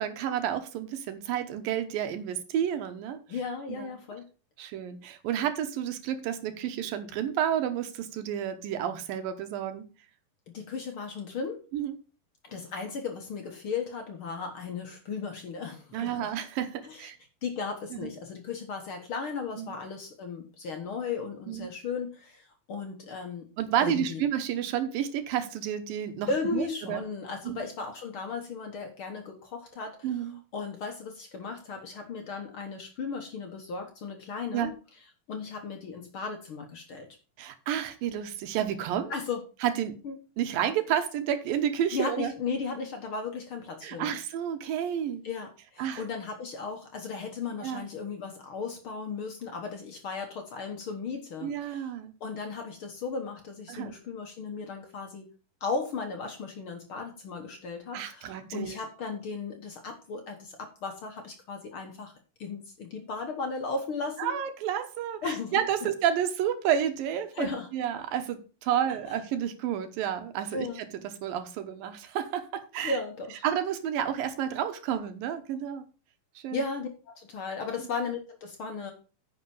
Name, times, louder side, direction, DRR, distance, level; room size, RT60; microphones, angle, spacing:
voice 1, 0.0-3.2 3.7-4.0 4.6-9.9 11.7-11.9 15.9-17.2 17.9-18.1 19.6-19.7 21.5-21.7 23.6-27.0 27.5-27.6 30.0-30.4 34.5-34.7 37.4-39.1 39.6-40.0 40.4-42.3 43.8-45.2 45.8-46.0 47.6-47.9 51.4-52.1 53.7-53.9 57.9-58.8 64.2-70.9 71.2-73.0 73.4-75.8 76.4-76.6, right 9 dB, 80° right, 9 dB, 2.7 m, -30 dB
voice 2, 3.3-4.2 10.5-11.6 12.4-16.3 16.8-17.1 17.4-23.5 23.8-24.2 26.3-34.7 35.3-37.1 39.1-39.4 40.0-40.2 41.9-44.2 45.2-51.9 52.2-55.3 55.6-62.1 62.4-64.3 65.2-65.9 67.3-67.7 69.1-69.2 70.5-70.8 72.8-73.4 76.5-78.9, left 4 dB, 60° left, 4 dB, 1.4 m, -36 dB
9.7 x 5.8 x 5.4 m, 0.35 s
omnidirectional pair, 4.1 m